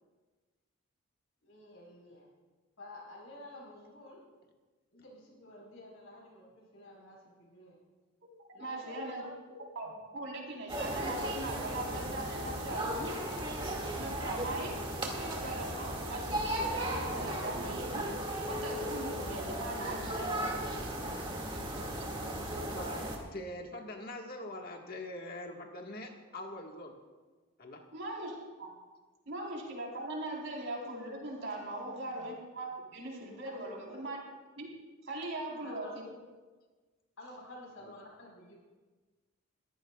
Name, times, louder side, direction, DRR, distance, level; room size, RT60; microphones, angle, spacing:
voice 1, 1.4-2.3 2.8-4.2 4.9-7.8 8.5-9.3 22.7-22.8 31.9-32.4 33.4-34.0 35.5-35.9 37.2-38.6, left 1 dB, 70° left, -2 dB, 4.6 m, -51 dB
voice 2, 8.6-9.2 9.7-13.2 13.6-20.9 21.5-22.3 27.9-28.7 29.3-34.2 34.6-34.7 35.0-36.1, right 2 dB, 60° right, -2 dB, 3.9 m, -40 dB
sound 1, 10.7-23.2, right 1 dB, 25° right, 2.1 m, -36 dB
voice 3, 22.0-26.9 27.6-27.8 37.8-37.9, left 1 dB, 45° left, 2 dB, 1.6 m, -44 dB
22.5 x 15.0 x 2.4 m, 1.3 s
head